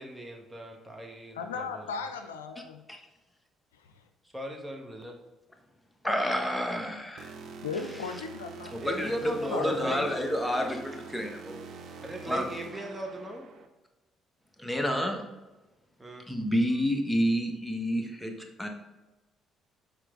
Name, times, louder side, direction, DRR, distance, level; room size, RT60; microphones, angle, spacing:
voice 1, 0.0-1.8 4.3-5.2 8.8-10.2 12.0-13.4 16.0-16.2, equal, 15° right, 1 dB, 1.6 m, -37 dB
voice 2, 1.3-2.8 7.5-8.8 9.5-10.1, left 5 dB, 90° left, 7 dB, 0.4 m, -36 dB
voice 3, 6.0-7.3 8.7-11.6 12.2-12.4 14.6-15.2 16.3-18.7, equal, 10° left, 3 dB, 1.3 m, -29 dB
sound 1, 7.2-13.7, right 5 dB, 65° right, 0.7 m, -45 dB
6.7 x 4.7 x 3.8 m, 1.1 s
hypercardioid pair, 50°, 0 cm